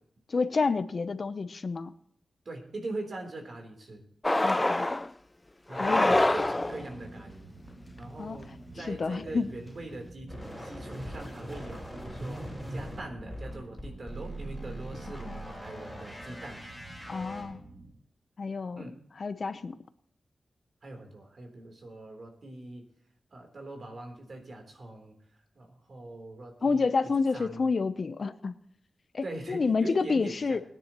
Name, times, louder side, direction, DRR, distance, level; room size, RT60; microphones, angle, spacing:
voice 1, 0.3-1.9 4.4-4.9 5.7-6.1 8.2-8.4 8.8-9.5 15.3-15.5 17.1-17.6 18.4-18.9 19.2-19.8 26.6-28.5 29.1-30.6, left 4 dB, 55° left, 12 dB, 0.7 m, -29 dB
voice 2, 2.5-4.0 5.7-7.5 8.0-8.5 8.8-16.6 18.8-18.9 20.8-22.8 23.3-25.1 25.6-27.7 29.2-30.6, right 2 dB, 55° right, 3 dB, 3.5 m, -42 dB
sound 1, 4.2-5.1 5.7-6.9, left 2 dB, 20° left, 0.4 m, -25 dB
sound 2, 5.8-17.9, right 2 dB, 75° right, 5.6 m, -49 dB
sound 3, 10.3-17.4, right 1 dB, ahead, 6.5 m, -41 dB
22.0 x 10.0 x 3.0 m, 0.69 s
wide cardioid pair, 85°, 0 cm